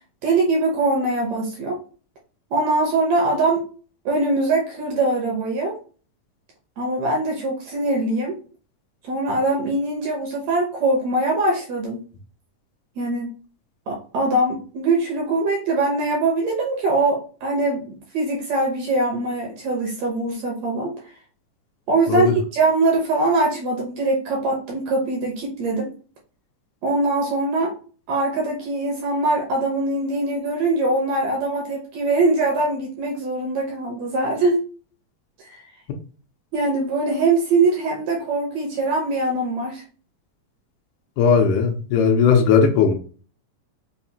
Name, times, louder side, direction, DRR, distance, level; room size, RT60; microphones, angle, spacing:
voice 1, 0.2-1.8 2.5-3.6 4.0-5.8 6.8-8.4 9.0-12.0 13.0-13.4 13.9-20.9 21.9-25.9 26.8-27.7 28.1-34.6 35.5-35.6 36.5-39.8, right 2 dB, 70° right, 1.7 m, -22 dB
voice 2, 41.2-42.9, left 6 dB, 80° left, 2.0 m, -17 dB
5.6 x 2.5 x 2.7 m
omnidirectional pair, 3.9 m